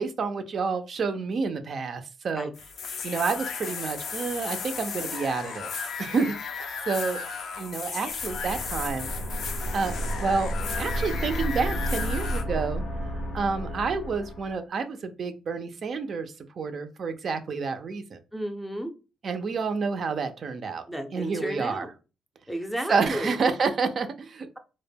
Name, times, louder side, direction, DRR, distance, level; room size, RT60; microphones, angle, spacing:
voice 1, 0.0-2.5 3.0-7.2 7.6-9.1 9.5-12.8 13.3-18.2 19.2-20.8 21.1-21.9 22.9-24.5, right 4 dB, 50° right, 8 dB, 0.3 m, -29 dB
sound 1, 2.5-12.4, left 5 dB, 65° left, 0.4 m, -35 dB
sound 2, 8.1-14.6, equal, 85° left, 0.8 m, -32 dB
voice 2, 18.3-18.9 20.9-21.9 22.5-23.3, equal, 5° left, 6 dB, 0.5 m, -33 dB
2.1 x 2.1 x 3.3 m, 0.31 s
cardioid pair, 90°, 0 cm